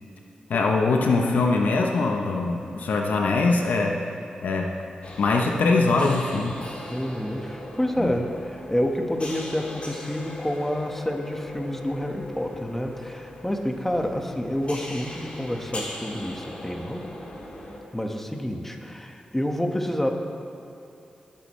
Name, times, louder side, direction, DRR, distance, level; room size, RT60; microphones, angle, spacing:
voice 1, 0.5-4.0 4.4-4.7 5.2-6.5 8.0-8.1, left 3 dB, 80° left, 2 dB, 1.0 m, -22 dB
sound 1, 5.0-17.8, left 1 dB, 45° left, 2.6 m, -39 dB
voice 2, 6.9-17.0 17.9-20.1, equal, 10° left, 2 dB, 1.6 m, -28 dB
21.5 x 8.5 x 3.3 m, 2.8 s
cardioid pair, 45°, 3 cm